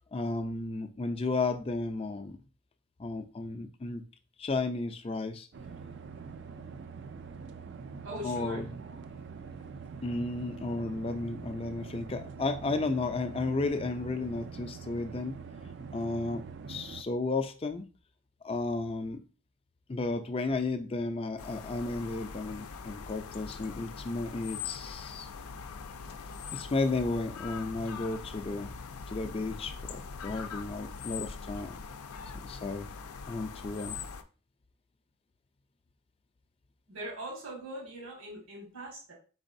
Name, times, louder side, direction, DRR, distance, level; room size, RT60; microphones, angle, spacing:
voice 1, 0.1-2.4 3.0-4.0 4.4-5.5 8.2-8.7 10.0-15.4 15.9-16.4 16.7-17.8 18.4-19.2 19.9-25.3 26.5-28.7 29.1-31.8 32.4-32.9 33.3-34.0, left 3 dB, 25° left, 8 dB, 0.4 m, -33 dB
sound 1, 5.5-17.0, right 5 dB, 55° right, 0.4 m, -44 dB
voice 2, 8.0-9.0 36.9-39.1, right 1 dB, 80° right, -2 dB, 1.9 m, -41 dB
sound 2, 21.4-34.2, left 5 dB, 90° left, 0.5 m, -42 dB
4.4 x 4.0 x 2.6 m, 0.35 s
head